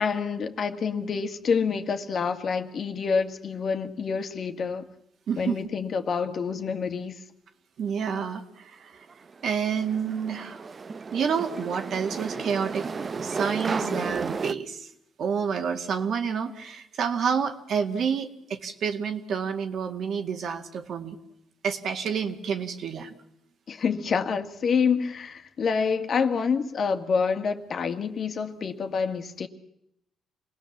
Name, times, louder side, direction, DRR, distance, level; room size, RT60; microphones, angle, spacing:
voice 1, 0.0-4.9 5.4-7.2 13.8-14.1 23.7-29.5, left 5 dB, 55° left, 2.0 m, -27 dB
voice 2, 5.3-5.6 7.8-9.1 9.4-10.7 11.1-14.9 15.2-21.2 21.6-23.1, right 6 dB, 65° right, 2.2 m, -29 dB
sound 1, 9.1-14.5, right 5 dB, 40° right, 0.9 m, -33 dB
27.5 x 19.0 x 7.4 m
cardioid pair, 90°, 0 cm